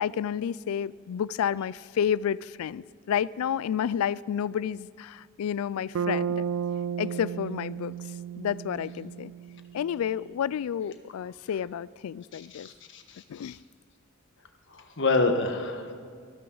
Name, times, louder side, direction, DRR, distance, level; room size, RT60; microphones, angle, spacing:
voice 1, 0.0-6.4 7.0-8.0 8.4-9.3 9.7-12.7 13.3-13.6, left 8 dB, 90° left, 21 dB, 0.3 m, -30 dB
Bass guitar, 5.9-10.0, right 7 dB, 80° right, 0.4 m, -33 dB
voice 2, 12.3-13.5 14.7-15.9, left 3 dB, 60° left, 6 dB, 1.4 m, -28 dB
23.0 x 13.5 x 3.9 m, 2.1 s
head